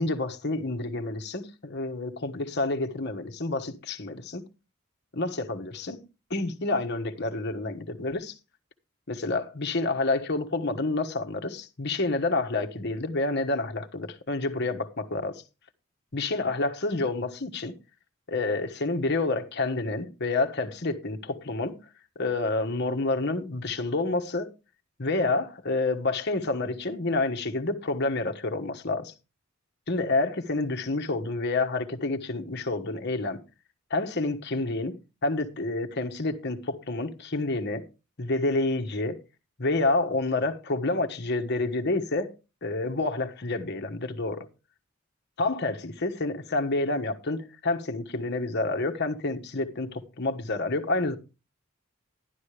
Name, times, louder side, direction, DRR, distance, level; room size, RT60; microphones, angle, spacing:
voice 1, 0.0-4.4 5.1-6.0 6.3-8.4 9.1-15.4 16.1-17.7 18.3-21.8 22.1-24.5 25.0-29.1 29.9-33.4 33.9-34.9 35.2-37.9 38.2-39.2 39.6-42.3 42.6-44.5 45.4-51.2, left 2 dB, 55° left, 1.3 m, -28 dB
12.0 x 11.5 x 3.3 m
head